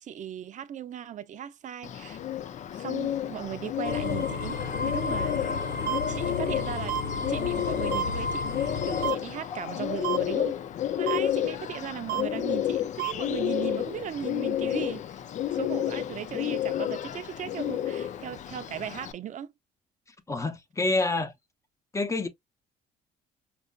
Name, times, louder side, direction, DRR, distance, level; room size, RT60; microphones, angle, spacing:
voice 1, 0.0-2.2 2.7-4.6 4.9-5.5 6.1-7.0 7.3-10.5 11.0-15.0 15.5-19.5, right 9 dB, 45° right, 0.6 m, -37 dB
Bird, 1.8-19.1, left 11 dB, 45° left, 0.4 m, -31 dB
sound 1, 3.8-9.1, left 4 dB, 65° left, 1.0 m, -32 dB
sound 2, 5.9-6.0 6.9-7.0 7.9-8.0 9.0-9.2 10.0-10.2 11.1-11.2 12.1-12.2 13.0-13.1, right 17 dB, 75° right, 0.9 m, -28 dB
voice 2, 20.3-21.3 21.9-22.3, left 2 dB, 20° left, 0.8 m, -27 dB
5.3 x 2.5 x 2.3 m
cardioid pair, 110°, 17 cm